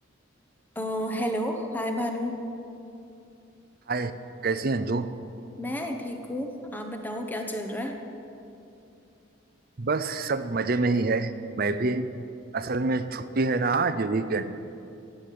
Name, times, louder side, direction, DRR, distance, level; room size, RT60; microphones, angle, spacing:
voice 1, 0.7-2.4 5.6-7.9, equal, 10° left, 3 dB, 1.1 m, -31 dB
voice 2, 4.4-5.1 9.8-11.3 11.6-12.2 12.5-14.5, right 3 dB, 45° right, 11 dB, 0.6 m, -26 dB
16.0 x 8.6 x 7.7 m, 2.7 s
head